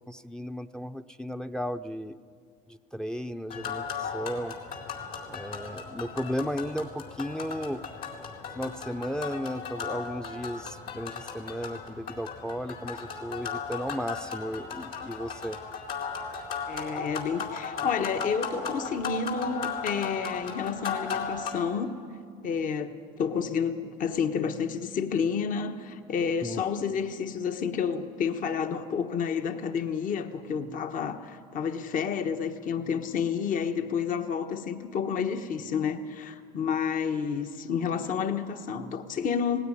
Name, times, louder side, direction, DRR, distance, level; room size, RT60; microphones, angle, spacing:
voice 1, 0.1-2.2 2.7-4.5 5.3-7.8 8.6-15.6 26.4-26.6, equal, 5° left, 11 dB, 0.6 m, -35 dB
sound 1, 3.5-21.6, left 5 dB, 70° left, 4.0 m, -36 dB
voice 2, 16.7-21.9 22.4-39.6, left 6 dB, 55° left, 7 dB, 1.3 m, -30 dB
18.0 x 16.5 x 9.9 m, 2.1 s
supercardioid pair, 90°, 17 cm